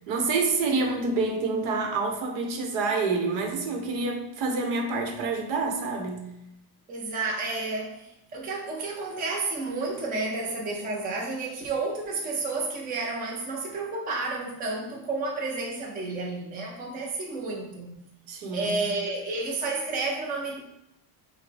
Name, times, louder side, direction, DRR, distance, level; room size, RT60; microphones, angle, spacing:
voice 1, 0.1-6.3 18.3-18.7, right 3 dB, 80° right, 0.9 m, -27 dB
voice 2, 6.9-17.9 18.5-20.6, right 3 dB, 20° right, 0.5 m, -31 dB
6.0 x 2.1 x 3.3 m
cardioid pair, 175°, 47 cm